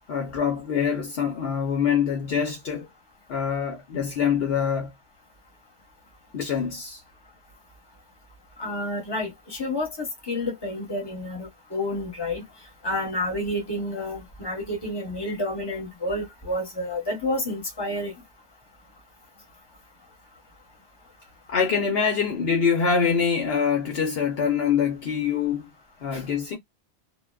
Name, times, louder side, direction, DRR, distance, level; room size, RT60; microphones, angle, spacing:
voice 1, 0.1-2.9 3.3-4.9 6.3-7.0 21.5-25.7 26.0-26.6, left 6 dB, 65° left, 0.9 m, -24 dB
voice 2, 8.6-12.4 12.8-18.1 26.1-26.2, left 1 dB, 20° left, 1.1 m, -30 dB
2.5 x 2.2 x 2.2 m
omnidirectional pair, 1.2 m